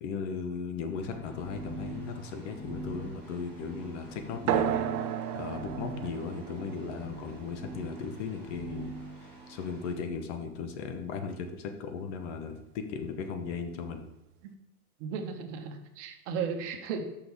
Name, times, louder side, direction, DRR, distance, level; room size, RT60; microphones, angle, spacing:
voice 1, 0.0-4.9 5.3-8.9 9.2-14.1, left 5 dB, 55° left, 7 dB, 1.1 m, -37 dB
sound 1, 0.8-9.9, right 2 dB, 5° left, 2.3 m, -43 dB
sound 2, 4.5-9.5, right 10 dB, 90° right, 0.6 m, -34 dB
voice 2, 15.0-17.0, right 6 dB, 55° right, 4 dB, 1.1 m, -35 dB
6.3 x 5.9 x 3.5 m, 0.96 s
supercardioid pair, 145°, 44 cm